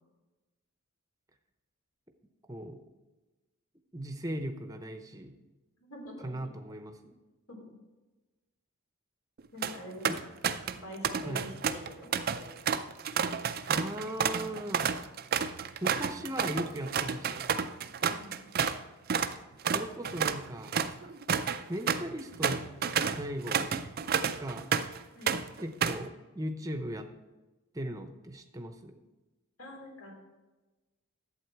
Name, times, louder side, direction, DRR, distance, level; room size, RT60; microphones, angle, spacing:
voice 1, 2.5-2.8 3.9-5.3 6.2-7.2 10.1-10.2 11.2-11.5 13.7-14.9 15.8-17.4 19.7-20.7 21.7-22.6 23.1-23.7 24.4-24.7 25.6-27.1 27.7-29.0, equal, 15° right, 6 dB, 0.7 m, -38 dB
voice 2, 5.8-6.3 7.5-7.6 9.5-10.1 10.7-12.6 18.1-18.8 25.1-25.4 29.6-30.1, equal, 70° left, 0 dB, 3.0 m, -46 dB
sound 1, 9.4-9.8 10.1-10.8 11.0-18.8 19.1-19.3 19.6-25.0 25.3-26.1, right 7 dB, 40° right, 0.4 m, -30 dB
11.5 x 8.0 x 4.6 m, 1.2 s
head